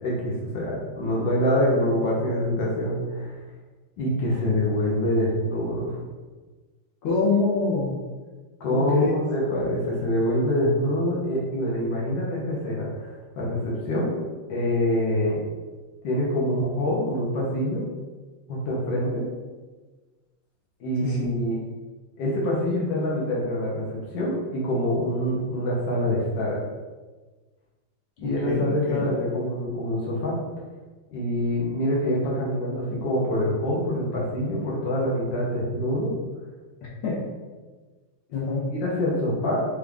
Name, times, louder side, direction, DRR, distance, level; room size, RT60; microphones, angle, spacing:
voice 1, 0.0-3.4 4.0-6.0 8.6-14.1 14.5-15.4 16.0-17.8 18.5-19.3 20.8-21.6 22.2-26.6 28.2-30.4 31.1-36.1 38.7-39.7, left 1 dB, 65° left, -4 dB, 1.5 m, -25 dB
voice 2, 7.0-7.9 8.7-9.2 21.0-21.3 28.2-29.0 37.0-37.2 38.3-38.6, left 3 dB, 80° left, -5 dB, 2.0 m, -25 dB
4.8 x 2.5 x 3.4 m, 1.3 s
omnidirectional pair, 2.4 m